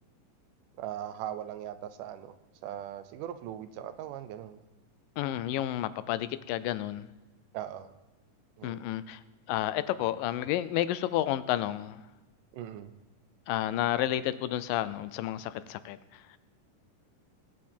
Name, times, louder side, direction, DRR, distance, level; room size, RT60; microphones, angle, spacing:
voice 1, 0.8-2.4 2.6-4.6 7.5-7.9 8.6-8.8 12.5-12.9, right 11 dB, 80° right, 12 dB, 2.2 m, -39 dB
voice 2, 5.2-7.1 8.6-9.2 9.5-12.0 13.5-16.0, left 13 dB, 85° left, 15 dB, 2.3 m, -31 dB
20.0 x 9.2 x 4.4 m, 1.1 s
omnidirectional pair, 3.9 m